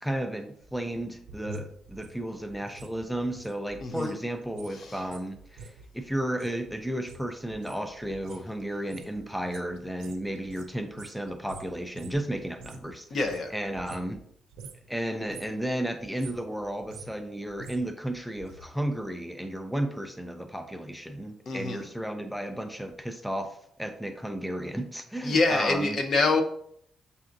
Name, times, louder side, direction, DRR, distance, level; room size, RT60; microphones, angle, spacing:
voice 1, 0.0-13.1 13.5-14.2 14.9-26.0, right 1 dB, ahead, 0.4 m, -33 dB
sound 1, 0.6-4.2 4.4-12.9 13.2-14.3 14.5-14.9 15.2-15.6 16.0-18.7 18.9-19.0, right 3 dB, 90° right, 0.4 m, -47 dB
voice 2, 3.8-4.2 4.8-5.0 13.1-13.5 21.5-21.9 25.2-26.4, left 3 dB, 55° left, 0.6 m, -26 dB
6.5 x 2.5 x 2.5 m
cardioid pair, 90°, 0 cm